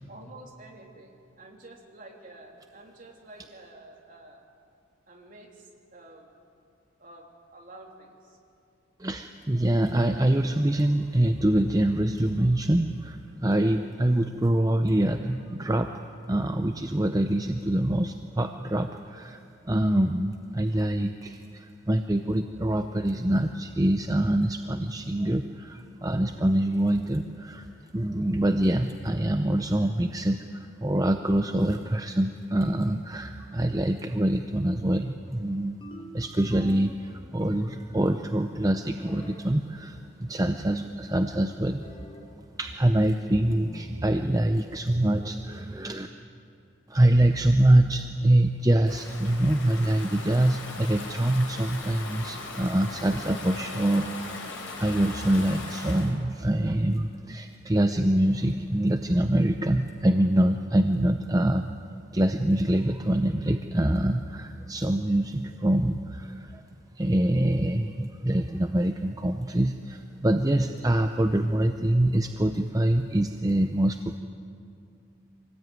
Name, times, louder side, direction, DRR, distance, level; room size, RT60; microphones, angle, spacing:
voice 1, 0.1-4.5 5.1-6.4 7.0-8.4, right 2 dB, 40° right, 0 dB, 3.3 m, -49 dB
voice 2, 9.0-15.9 16.3-27.7 27.9-35.8 36.1-41.8 42.6-46.1 46.9-54.5 54.8-61.7 62.1-66.6 67.0-74.2, right 1 dB, 15° right, 6 dB, 0.6 m, -25 dB
sound 1, 31.4-32.0 32.6-33.1 35.8-37.0 37.4-38.1 39.0-39.5 41.8-42.3 43.4-43.9, equal, 25° left, 2.0 m, -43 dB
Stream / Ocean, 48.9-56.1, left 2 dB, 70° left, 4.7 m, -39 dB
24.5 x 18.5 x 9.4 m, 2.5 s
head